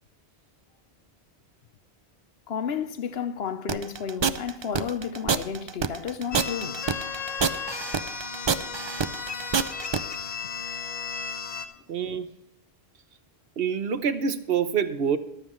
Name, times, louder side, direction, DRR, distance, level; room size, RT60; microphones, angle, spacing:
voice 1, 2.5-6.9, left 7 dB, 70° left, 1.0 m, -32 dB
sound 1, 3.7-10.0, right 6 dB, 45° right, 0.3 m, -26 dB
sound 2, 6.3-11.6, left 5 dB, 45° left, 0.9 m, -34 dB
voice 2, 11.9-12.3 13.6-15.2, right 7 dB, 65° right, 1.0 m, -26 dB
22.0 x 7.5 x 3.1 m
omnidirectional pair, 1.1 m